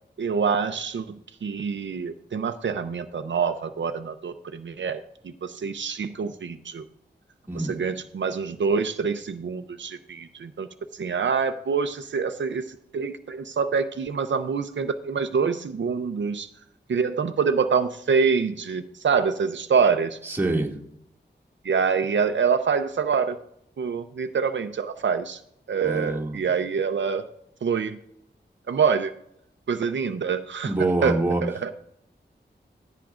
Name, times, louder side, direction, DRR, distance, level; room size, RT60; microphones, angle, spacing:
voice 1, 0.2-6.8 7.5-16.5 16.9-20.2 21.6-23.4 23.8-25.4 25.7-27.3 27.6-28.0 28.7-29.1 29.7-31.7, right 6 dB, 85° right, 8 dB, 0.6 m, -26 dB
voice 2, 20.2-20.7 25.8-26.4 30.6-31.4, right 2 dB, 10° right, -3 dB, 2.1 m, -25 dB
16.5 x 9.0 x 2.5 m, 0.73 s
wide cardioid pair, 95°, 19 cm